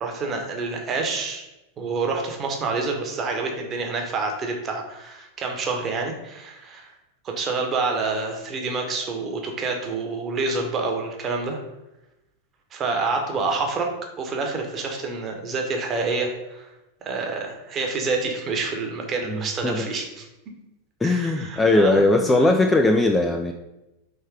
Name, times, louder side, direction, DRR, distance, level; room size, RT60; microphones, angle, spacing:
voice 1, 0.0-1.4 1.8-6.9 7.2-11.6 12.7-13.9 14.2-16.7 17.0-20.3 21.0-22.5, right 3 dB, 25° right, 2 dB, 0.9 m, -28 dB
voice 2, 19.2-19.9 21.0-23.5, left 2 dB, 10° left, 3 dB, 0.3 m, -19 dB
3.4 x 3.2 x 4.6 m, 0.95 s
figure-of-eight pair, 90°, 0 cm